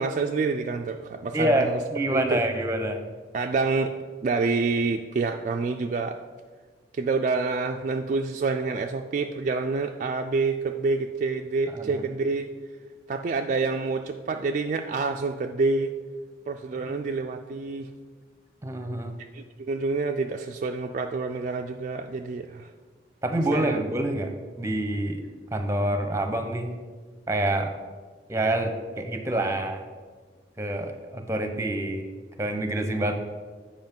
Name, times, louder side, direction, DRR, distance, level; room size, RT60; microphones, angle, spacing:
voice 1, 0.0-1.8 2.1-2.4 3.3-3.9 4.2-6.2 6.9-12.5 13.1-15.9 16.5-17.9 19.3-22.7 23.5-23.8, right 4 dB, 45° right, 4 dB, 0.3 m, -27 dB
voice 2, 1.3-3.0 11.7-12.0 16.7-16.9 18.6-19.1 23.2-24.3 24.6-25.2 25.5-26.7 27.3-27.7 28.3-29.8 30.6-32.1 32.4-33.2, right 1 dB, 15° right, 6 dB, 0.7 m, -27 dB
7.9 x 5.0 x 5.3 m, 1.5 s
head